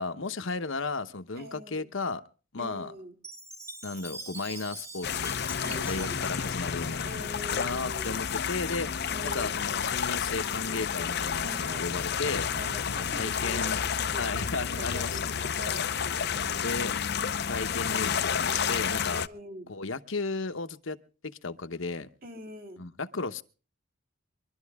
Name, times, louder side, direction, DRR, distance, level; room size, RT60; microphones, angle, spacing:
voice 1, 0.0-2.2 2.5-2.9 3.8-5.3 5.9-7.0 7.5-8.9 9.2-12.5 12.9-13.8 14.2-15.4 16.6-16.9 17.5-19.2 19.7-21.0 21.2-22.1 22.8-23.4, left 3 dB, 65° left, 9 dB, 1.0 m, -34 dB
voice 2, 1.3-1.9 2.6-3.2 5.6-6.2 7.0-8.2 9.1-9.7 11.4-11.9 12.5-13.8 14.0-15.9 19.1-19.7 22.2-22.8, equal, 45° right, 0 dB, 3.4 m, -44 dB
Chime, 3.2-7.6, right 2 dB, 15° right, 1.3 m, -44 dB
sound 1, 5.0-19.3, left 7 dB, 50° left, 0.6 m, -30 dB
23.5 x 12.5 x 3.5 m, 0.37 s
head